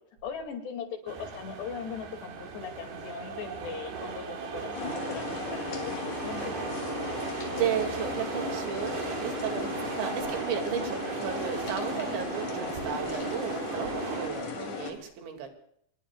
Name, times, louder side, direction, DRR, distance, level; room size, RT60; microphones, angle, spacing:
voice 1, 0.2-6.8, left 6 dB, 70° left, 4 dB, 4.5 m, -39 dB
sound 1, 1.1-14.3, right 5 dB, 60° right, 4.2 m, -37 dB
sound 2, 4.7-14.9, left 4 dB, 45° left, 3.9 m, -36 dB
voice 2, 7.5-15.5, right 8 dB, 75° right, 4 dB, 4.6 m, -34 dB
26.0 x 22.0 x 2.4 m, 0.69 s
omnidirectional pair, 5.2 m